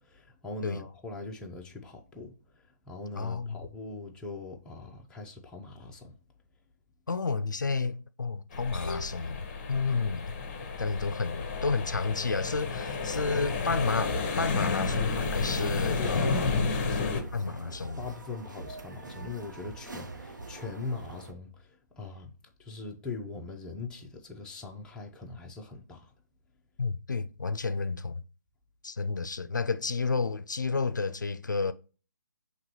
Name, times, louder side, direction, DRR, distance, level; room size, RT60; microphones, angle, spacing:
voice 1, 0.0-6.2 16.0-22.3 22.6-26.1, left 3 dB, 5° left, 0.5 m, -41 dB
voice 2, 3.2-3.6 7.1-9.4 9.7-10.3 10.8-16.5 17.3-18.0 26.8-28.2 28.8-31.7, left 4 dB, 85° left, 0.4 m, -31 dB
sound 1, 8.5-17.2, left 4 dB, 30° left, 0.8 m, -31 dB
sound 2, 12.9-21.3, right 3 dB, 80° right, 0.8 m, -43 dB
5.8 x 3.0 x 2.9 m
figure-of-eight pair, 145°, 10 cm